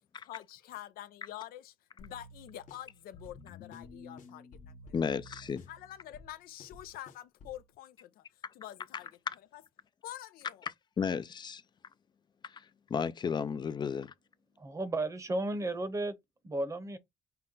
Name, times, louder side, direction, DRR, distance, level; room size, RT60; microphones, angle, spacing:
voice 1, 0.2-5.2 5.7-9.1 9.5-9.6 10.0-10.7, left 13 dB, 85° left, 0.5 m, -47 dB
sound 1, 2.0-7.6, left 2 dB, 60° left, 0.9 m, -52 dB
voice 2, 4.9-5.7 9.3-9.4 11.0-11.6 12.4-14.1, left 6 dB, 30° left, 0.4 m, -34 dB
voice 3, 14.6-16.2 16.4-17.0, right 2 dB, 20° right, 0.8 m, -33 dB
5.6 x 2.1 x 3.7 m
cardioid pair, 130°, 15 cm